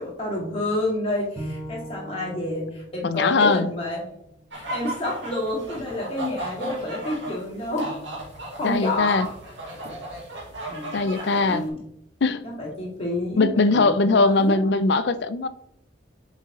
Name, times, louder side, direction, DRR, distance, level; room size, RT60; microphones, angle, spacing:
voice 1, 0.0-4.1 4.5-7.9 8.6-9.3 10.7-11.8 12.4-14.6, left 1 dB, 30° left, -3 dB, 2.1 m, -29 dB
Bowed string instrument, 1.4-4.6, right 1 dB, 5° right, 2.1 m, -40 dB
voice 2, 3.0-3.7 8.6-9.3 10.9-11.6 12.2-12.5 13.4-15.5, left 3 dB, 65° left, 13 dB, 0.5 m, -20 dB
sound 1, 4.5-11.7, right 1 dB, 75° right, 2.1 m, -36 dB
7.1 x 4.1 x 3.7 m, 0.75 s
head